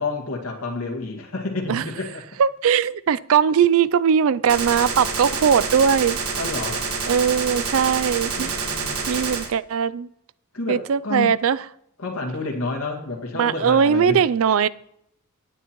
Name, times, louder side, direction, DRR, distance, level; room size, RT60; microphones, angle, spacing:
voice 1, 0.0-2.2 6.4-6.9 8.3-9.1 10.5-11.4 12.0-14.2, left 3 dB, 80° left, 2.0 m, -29 dB
voice 2, 2.4-6.2 7.1-8.7 9.1-10.1 10.7-11.6 13.4-14.7, right 7 dB, 70° right, 0.4 m, -20 dB
Gunshot gunfire, 4.5-9.5, right 4 dB, 85° right, 1.5 m, -27 dB
17.5 x 9.0 x 3.0 m
head